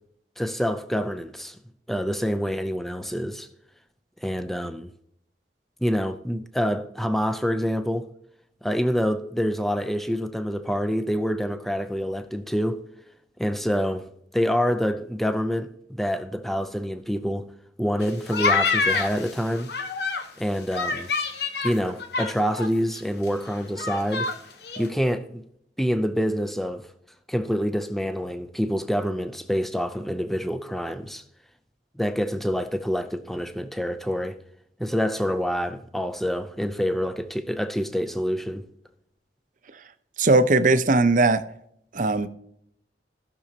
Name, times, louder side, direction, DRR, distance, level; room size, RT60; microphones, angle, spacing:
voice 1, 0.4-1.6 1.9-3.5 4.2-4.9 5.8-8.1 8.6-12.8 13.4-14.1 14.3-17.5 17.8-19.7 20.4-21.1 21.6-24.3 24.8-25.4 25.8-26.9 27.3-31.2 32.0-34.4 34.8-38.6, equal, ahead, 0.5 m, -26 dB
sound 1, 18.0-20.3 20.7-22.7 22.9-23.0 23.3-24.4 24.6-24.9, left 4 dB, 65° left, 1.0 m, -26 dB
voice 2, 40.2-41.4 41.9-42.3, right 3 dB, 45° right, 0.7 m, -19 dB
15.0 x 6.3 x 2.8 m
head